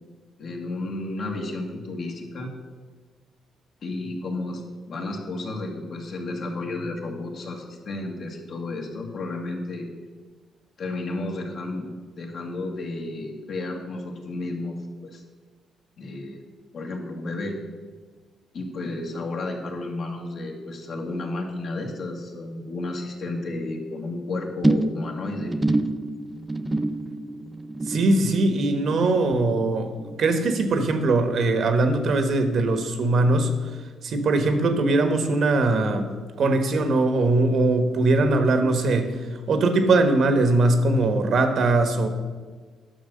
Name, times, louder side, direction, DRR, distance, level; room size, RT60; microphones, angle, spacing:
voice 1, 0.4-2.5 3.8-9.9 10.8-11.9 12.2-14.8 15.0-15.2 16.0-16.4 16.7-17.6 18.5-25.5, left 2 dB, 60° left, 1 dB, 2.0 m, -32 dB
sound 1, 24.6-31.2 31.5-31.9 32.2-32.3, right 2 dB, 15° right, 0.5 m, -28 dB
voice 2, 27.8-33.5 34.0-36.1 36.4-39.2 39.5-42.1, right 2 dB, 60° right, 8 dB, 1.3 m, -21 dB
10.5 x 6.2 x 6.5 m, 1.5 s
cardioid pair, 90°, 0 cm